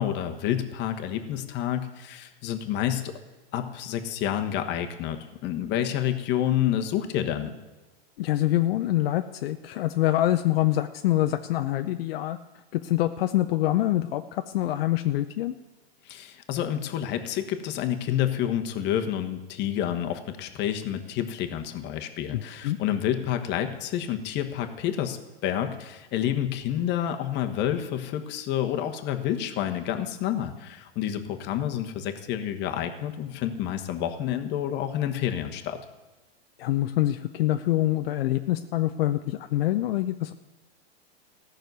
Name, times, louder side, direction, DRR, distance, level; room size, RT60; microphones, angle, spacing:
voice 1, 0.0-3.2 3.5-7.5 16.0-35.8, left 10 dB, 35° left, 6 dB, 1.3 m, -29 dB
voice 2, 8.2-12.4 12.7-15.5 22.3-22.8 36.6-40.3, left 14 dB, 65° left, 8 dB, 0.7 m, -25 dB
14.5 x 6.5 x 9.3 m, 1.2 s
hypercardioid pair, 140°, 32 cm